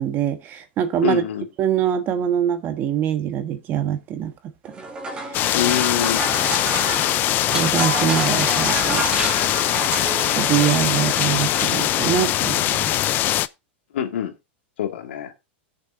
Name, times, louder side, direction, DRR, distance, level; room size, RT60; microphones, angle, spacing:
voice 1, 0.0-1.2 1.6-4.3 5.3-5.4 6.4-6.5 7.5-9.0 10.3-12.9, right 10 dB, 35° right, 1.4 m, -23 dB
voice 2, 1.0-1.5 5.5-6.2 13.9-14.3 14.8-15.3, left 9 dB, 80° left, 2.0 m, -25 dB
sound 1, 4.6-12.3, right 3 dB, 15° right, 2.2 m, -30 dB
sound 2, 5.3-13.5, left 14 dB, 30° left, 0.4 m, -21 dB
18.0 x 6.8 x 2.6 m
supercardioid pair, 140°, 6 cm